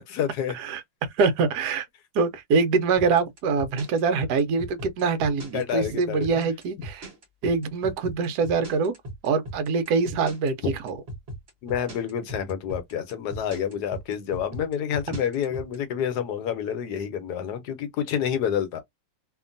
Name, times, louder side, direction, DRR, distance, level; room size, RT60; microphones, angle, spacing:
voice 1, 0.0-0.5 5.5-6.5 11.6-18.8, left 9 dB, 75° left, 1.1 m, -28 dB
voice 2, 0.5-1.9 2.1-7.1 7.4-8.9 9.2-11.0 15.1-15.2, right 4 dB, 70° right, 1.2 m, -24 dB
sound 1, 3.0-15.8, right 1 dB, 40° right, 1.2 m, -38 dB
2.8 x 2.4 x 2.5 m
omnidirectional pair, 1.9 m